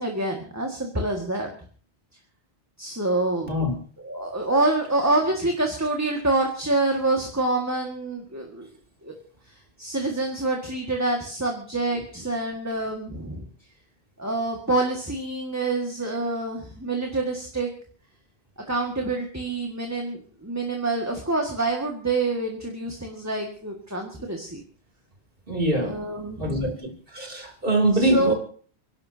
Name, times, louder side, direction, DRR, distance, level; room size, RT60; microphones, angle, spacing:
voice 1, 0.0-1.5 2.8-3.5 4.0-8.7 9.0-9.2 9.8-13.5 14.2-17.7 18.7-24.6 25.8-26.8 28.0-28.3, right 2 dB, 15° right, 1 dB, 1.9 m, -26 dB
voice 2, 25.5-26.0 26.4-28.3, right 1 dB, 60° right, 2 dB, 3.4 m, -24 dB
30.0 x 11.5 x 2.8 m, 0.43 s
omnidirectional pair, 1.1 m